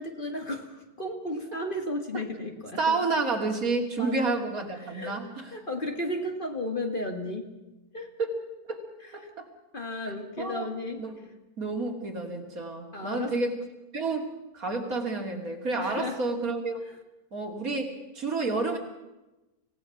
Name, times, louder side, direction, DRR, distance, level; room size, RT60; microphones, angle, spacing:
voice 1, 0.0-3.0 4.0-4.3 4.8-5.2 5.5-7.5 7.9-8.1 9.2-9.3 9.7-11.0 12.9-13.3 15.8-16.2, left 1 dB, 35° left, 4 dB, 2.1 m, -34 dB
voice 2, 2.8-5.5 8.2-8.3 8.7-8.8 9.1-9.5 10.0-10.7 11.0-11.2 11.6-13.5 13.9-14.3 14.5-16.8 17.3-18.8, right 3 dB, 65° right, 2 dB, 3.1 m, -30 dB
25.0 x 17.5 x 5.9 m, 1.0 s
omnidirectional pair, 1.6 m